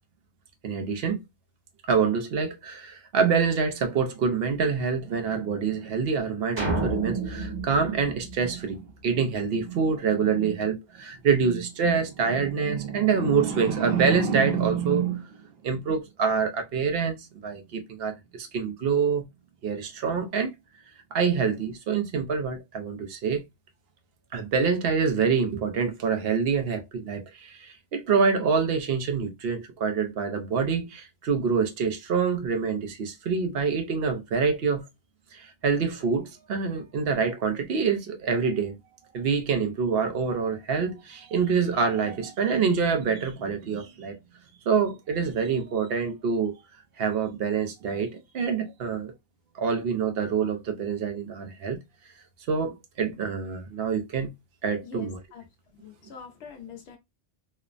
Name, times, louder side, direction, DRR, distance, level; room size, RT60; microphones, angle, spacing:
voice 1, 0.6-1.2 1.9-15.4 15.6-17.2 17.4-19.2 19.6-20.5 21.1-23.4 24.3-34.8 35.3-38.7 39.1-44.2 44.7-46.6 47.0-49.1 49.5-51.8 52.5-54.3 54.6-55.2, right 5 dB, 65° right, 0.8 m, -26 dB
sound 1, 6.6-9.0, right 2 dB, 25° right, 0.9 m, -31 dB
voice 2, 54.8-55.4 55.7-57.0, left 6 dB, 80° left, 0.9 m, -44 dB
3.1 x 2.0 x 2.4 m
omnidirectional pair, 1.2 m